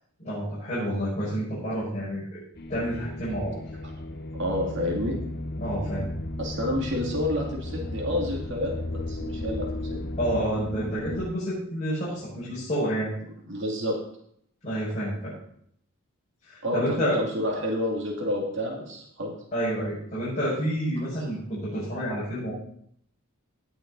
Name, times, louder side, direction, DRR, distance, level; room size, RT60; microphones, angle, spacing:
voice 1, 0.2-2.4 2.7-3.6 5.6-6.1 10.2-13.1 14.6-15.3 16.4-17.2 19.5-22.5, equal, 30° left, -11 dB, 5.8 m, -29 dB
sound 1, 2.5-11.2, left 1 dB, 45° left, 1.0 m, -34 dB
voice 2, 4.3-5.2 6.4-10.3 13.5-14.0 16.6-19.3 21.2-21.3, left 1 dB, 55° right, -1 dB, 2.6 m, -29 dB
18.0 x 6.3 x 4.1 m, 0.67 s
head